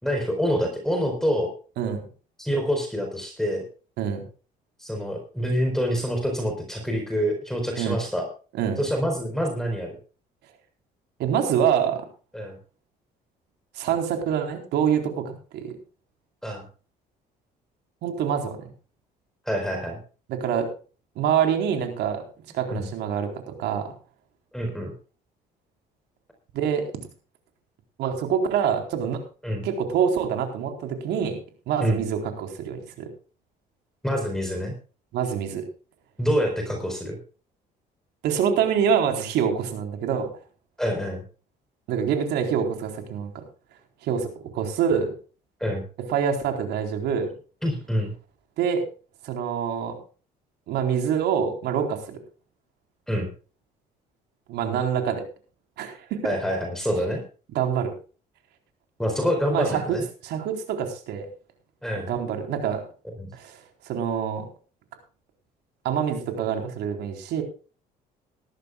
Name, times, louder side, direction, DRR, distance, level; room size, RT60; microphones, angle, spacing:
voice 1, 0.0-1.5 2.4-3.6 4.8-8.3 8.8-10.0 12.3-12.6 16.4-16.6 19.5-20.0 22.7-22.9 24.5-24.9 29.4-29.7 31.8-32.0 34.0-34.7 36.2-37.2 40.8-41.2 45.6-45.8 47.6-48.1 53.1-53.3 56.2-57.2 59.0-60.0 61.8-62.1 63.2-63.3, equal, 5° left, 3 dB, 4.4 m, -26 dB
voice 2, 11.2-12.0 13.8-15.7 18.0-18.6 20.3-20.7 21.2-22.2 22.5-23.9 26.5-26.9 28.0-29.2 29.6-33.1 35.1-35.6 38.2-40.3 41.9-43.4 44.0-44.3 44.5-45.1 46.1-47.3 48.6-48.8 49.2-50.0 50.7-52.2 54.5-55.2 55.8-56.2 57.5-57.9 59.5-59.8 60.2-61.3 62.1-62.8 63.3-63.6 63.8-64.4 65.8-67.4, right 7 dB, 80° right, 4 dB, 4.1 m, -25 dB
20.0 x 13.5 x 2.4 m, 0.36 s
cardioid pair, 110°, 17 cm